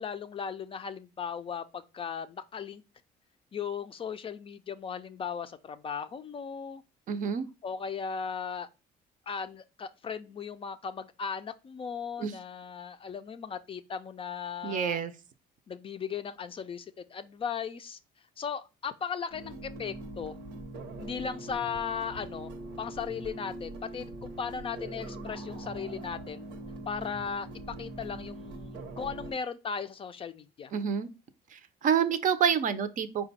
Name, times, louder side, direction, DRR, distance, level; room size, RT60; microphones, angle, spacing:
voice 1, 0.0-2.8 3.5-6.8 7.6-8.7 9.3-15.0 15.7-18.0 18.4-20.3 21.0-22.5 22.8-26.5 26.9-30.7, left 6 dB, 35° left, 0.4 m, -37 dB
voice 2, 7.1-7.5 12.2-12.3 14.6-15.1 30.7-31.1 31.5-33.2, right 7 dB, 50° right, 0.6 m, -28 dB
sound 1, 19.3-29.3, right 2 dB, 90° right, 0.9 m, -42 dB
4.9 x 2.2 x 4.0 m
cardioid pair, 110°, 17 cm